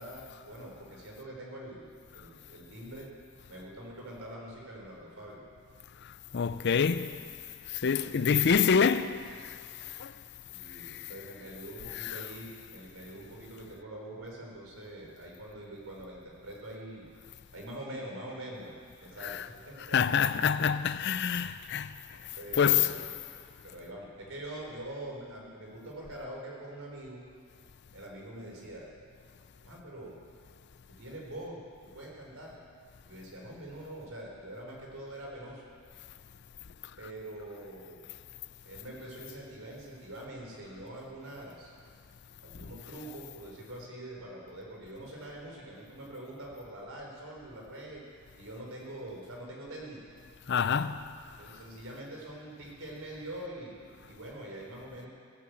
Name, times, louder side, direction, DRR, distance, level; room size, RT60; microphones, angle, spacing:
voice 1, 0.0-3.1 3.5-5.4 10.5-17.1 17.5-20.0 22.4-23.0 23.6-27.3 27.9-28.9 29.6-30.2 30.9-32.6 33.0-35.6 37.0-38.0 38.7-41.7 42.4-48.0 48.3-50.1 51.4-55.1, right 1 dB, 75° right, 4.1 m, -44 dB
voice 2, 6.3-7.2 7.7-9.6 10.0-10.1 10.9-11.0 19.2-19.4 19.9-21.9 22.6-22.9 50.5-51.0, left 6 dB, 50° left, 0.5 m, -26 dB
17.0 x 9.5 x 8.0 m
head